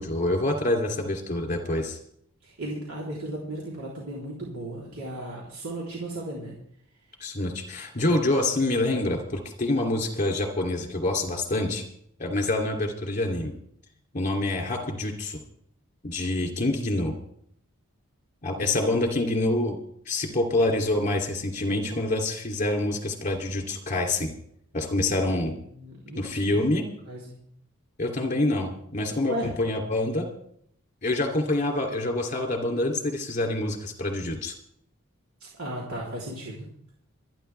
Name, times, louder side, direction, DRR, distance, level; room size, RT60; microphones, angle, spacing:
voice 1, 0.0-2.0 7.2-11.8 12.2-13.5 14.1-15.4 16.0-17.1 18.4-19.8 20.1-24.3 24.7-25.5 26.1-26.8 28.0-30.3 31.0-34.5, left 2 dB, 35° left, 2 dB, 2.9 m, -26 dB
voice 2, 2.4-6.6 18.6-18.8 25.7-26.7 27.0-27.4 29.3-29.5 35.4-36.7, right 1 dB, 85° right, -4 dB, 3.6 m, -35 dB
26.0 x 10.0 x 3.4 m, 0.68 s
head